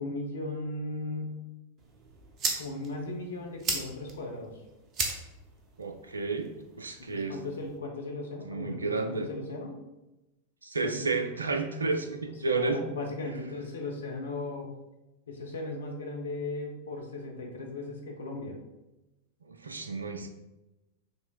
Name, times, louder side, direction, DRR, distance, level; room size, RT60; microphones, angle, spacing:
voice 1, 0.0-1.3 2.5-4.5 7.1-9.8 10.8-11.1 12.4-14.7 15.3-18.6, left 2 dB, 70° left, 0 dB, 0.7 m, -37 dB
sound 1, 1.8-7.8, right 4 dB, 35° right, 0.7 m, -38 dB
voice 2, 5.8-6.5 6.8-7.4 8.4-9.3 10.6-12.8 19.4-20.3, right 4 dB, 75° right, 7 dB, 0.4 m, -31 dB
5.4 x 3.2 x 2.3 m, 1.0 s
figure-of-eight pair, 90°, 0 cm